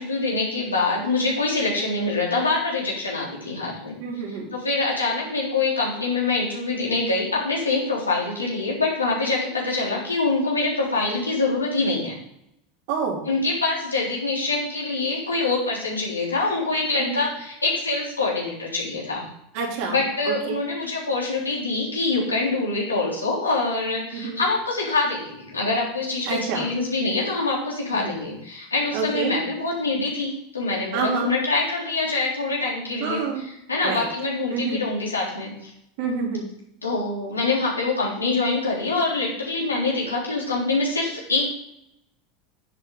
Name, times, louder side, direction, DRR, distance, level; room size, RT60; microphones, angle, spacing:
voice 1, 0.0-4.0 4.3-12.1 13.2-19.3 19.9-35.7 36.8-41.5, left 3 dB, 85° left, -4 dB, 3.5 m, -25 dB
voice 2, 4.0-4.5 12.9-13.2 17.0-17.2 19.5-19.9 20.2-20.6 24.1-24.4 26.2-26.7 27.9-28.1 28.9-29.4 30.9-31.3 33.0-33.4 33.8-34.1 34.5-34.8 36.0-36.5, right 5 dB, 55° right, -1 dB, 3.3 m, -27 dB
10.5 x 8.5 x 4.0 m, 0.77 s
figure-of-eight pair, 80°, 0 cm